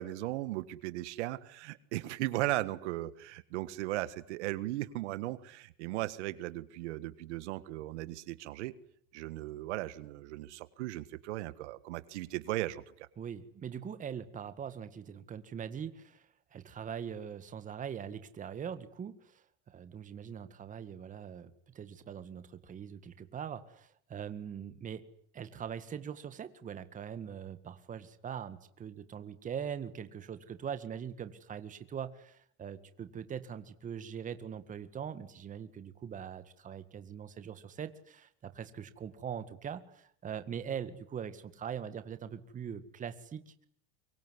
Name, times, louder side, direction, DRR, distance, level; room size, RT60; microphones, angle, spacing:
voice 1, 0.0-8.7 9.1-13.1, right 17 dB, 75° right, 16 dB, 1.7 m, -37 dB
voice 2, 13.2-16.3 16.5-25.0 25.3-43.7, right 8 dB, 20° right, 11 dB, 1.9 m, -42 dB
24.5 x 24.0 x 9.8 m, 0.65 s
supercardioid pair, 145°, 34 cm